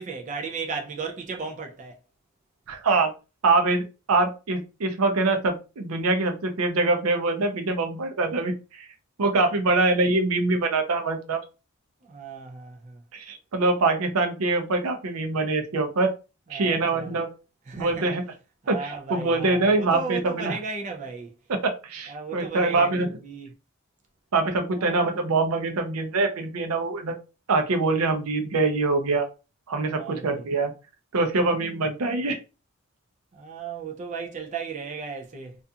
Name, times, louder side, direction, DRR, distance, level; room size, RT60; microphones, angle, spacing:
voice 1, 0.0-2.0 12.0-13.0 16.5-17.1 17.7-18.1 18.6-21.3 22.1-23.5 24.7-25.1 29.9-30.4 33.3-35.6, right 4 dB, 35° right, 0.3 m, -35 dB
voice 2, 2.7-3.1 3.4-8.9 9.2-11.4 13.1-16.1 16.5-17.3 17.7-18.2 18.7-20.6 21.5-23.1 24.3-27.1 27.5-29.3 29.7-30.7 31.1-32.4, right 3 dB, 85° right, 0.5 m, -24 dB
2.4 x 2.3 x 2.6 m
head